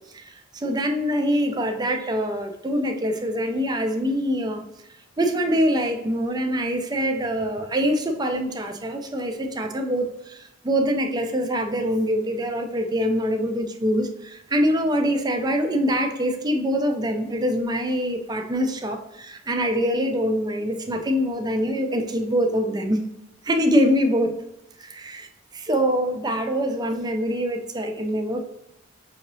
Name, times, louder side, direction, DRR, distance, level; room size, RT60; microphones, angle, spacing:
voice 1, 0.1-4.6 5.2-23.0 23.4-24.4 24.8-28.4, equal, 20° right, 5 dB, 0.5 m, -24 dB
5.7 x 3.0 x 2.6 m, 0.86 s
head